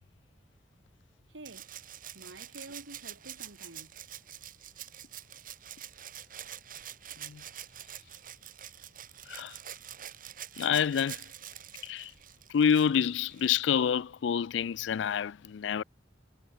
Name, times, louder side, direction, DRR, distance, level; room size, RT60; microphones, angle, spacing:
voice 1, 1.3-1.7 2.1-4.0, right 2 dB, 90° right, 2.7 m, -48 dB
Rattle (instrument), 1.4-13.8 15.2-15.3, right 11 dB, 45° right, 2.9 m, -46 dB
voice 2, 10.6-11.3 11.8-12.1 12.5-15.8, left 7 dB, 75° left, 0.4 m, -28 dB
head